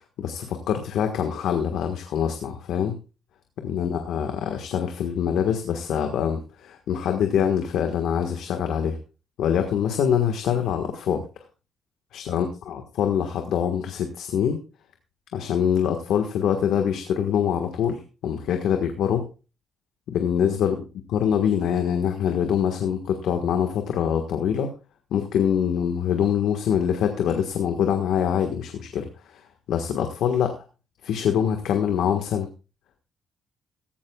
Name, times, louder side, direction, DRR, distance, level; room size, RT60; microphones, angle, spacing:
voice 1, 0.2-3.0 3.6-9.0 9.4-11.2 12.1-14.6 15.3-19.3 20.1-20.8 21.1-24.7 25.1-29.4 29.7-30.6 31.0-32.5, left 8 dB, 85° left, 5 dB, 1.5 m, -24 dB
16.0 x 15.0 x 2.4 m, 0.32 s
cardioid pair, 165°, 0 cm